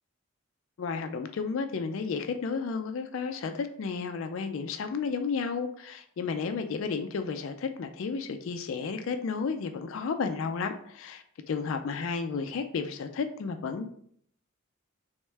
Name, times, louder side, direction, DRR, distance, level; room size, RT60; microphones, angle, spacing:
voice 1, 0.8-13.9, left 5 dB, 65° left, 7 dB, 0.3 m, -32 dB
3.5 x 3.2 x 3.3 m, 0.64 s
head